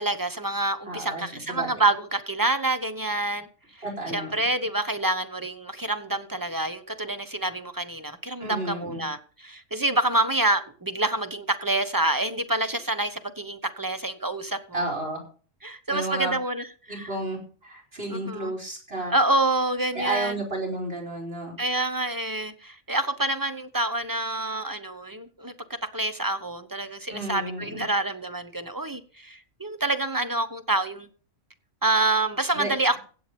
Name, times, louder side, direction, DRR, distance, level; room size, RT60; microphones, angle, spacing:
voice 1, 0.0-3.5 4.1-14.9 15.6-17.1 18.1-18.5 19.1-20.3 21.6-25.5 25.9-31.1 31.8-33.0, right 2 dB, 15° right, 1.0 m, -27 dB
voice 2, 0.9-1.7 3.8-4.4 8.4-9.0 14.7-15.2 15.9-16.4 16.9-19.2 19.9-21.5 27.1-27.8 32.5-33.0, right 2 dB, 45° right, 5.3 m, -32 dB
16.0 x 8.9 x 5.3 m
omnidirectional pair, 1.4 m